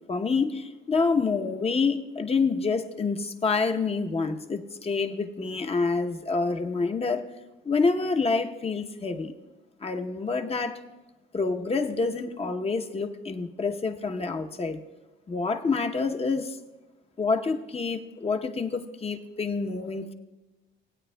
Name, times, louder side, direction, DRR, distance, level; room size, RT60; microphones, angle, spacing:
voice 1, 0.1-7.3 7.6-9.3 9.8-10.8 11.3-14.8 15.3-16.6 17.2-20.1, left 4 dB, 30° left, 6 dB, 0.8 m, -27 dB
18.0 x 8.9 x 2.3 m, 1.1 s
cardioid pair, 90°, 20 cm